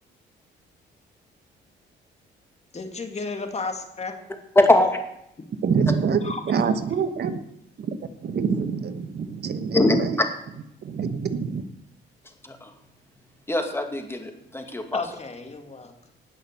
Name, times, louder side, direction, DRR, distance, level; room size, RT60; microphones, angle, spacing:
voice 1, 2.7-4.1 6.2-6.4 14.9-16.1, left 3 dB, 35° left, 5 dB, 2.3 m, -33 dB
voice 2, 4.6-5.0 9.7-10.0 12.4-12.7 13.5-15.0, left 1 dB, 10° left, 5 dB, 2.2 m, -21 dB
voice 3, 5.6-7.4 7.8-7.9 8.2-10.2 10.8-11.6, right 6 dB, 55° right, 10 dB, 1.2 m, -25 dB
18.5 x 6.3 x 6.8 m, 0.78 s
cardioid pair, 90°, 20 cm